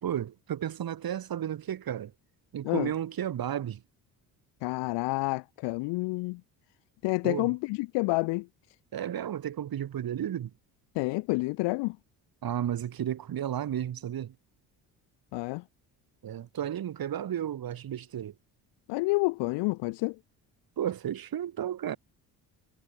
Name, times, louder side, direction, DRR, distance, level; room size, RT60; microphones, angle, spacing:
voice 1, 0.0-2.1 2.5-3.8 7.2-7.5 8.9-10.5 12.4-14.3 16.2-18.3 20.8-22.0, right 10 dB, 60° right, 4.0 m, -33 dB
voice 2, 4.6-6.4 7.0-8.5 10.9-12.0 15.3-15.6 18.9-20.2, left 25 dB, 90° left, 1.2 m, -29 dB
supercardioid pair, 75°, 41 cm